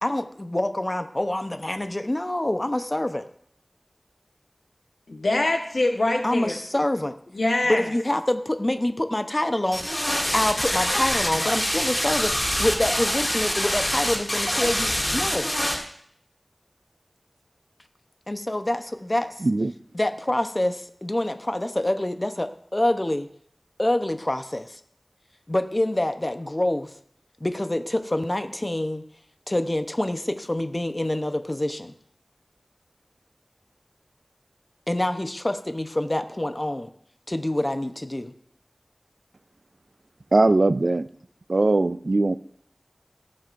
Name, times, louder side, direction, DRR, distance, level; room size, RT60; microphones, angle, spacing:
voice 1, 0.0-3.2 6.2-7.1 7.7-15.5 18.3-19.3 19.9-23.3 23.8-24.8 25.5-26.9 27.4-29.0 29.5-31.9 34.9-36.9 37.3-38.3, left 1 dB, 35° left, 8 dB, 0.8 m, -26 dB
voice 2, 5.1-6.6 7.3-7.8, left 2 dB, 90° left, 4 dB, 1.2 m, -23 dB
sound 1, 9.7-15.8, equal, 15° left, 2.4 m, -25 dB
voice 3, 19.4-19.7 40.3-41.1 41.5-42.4, right 2 dB, 75° right, 13 dB, 0.4 m, -20 dB
18.0 x 7.6 x 2.6 m, 0.65 s
wide cardioid pair, 40°, 0 cm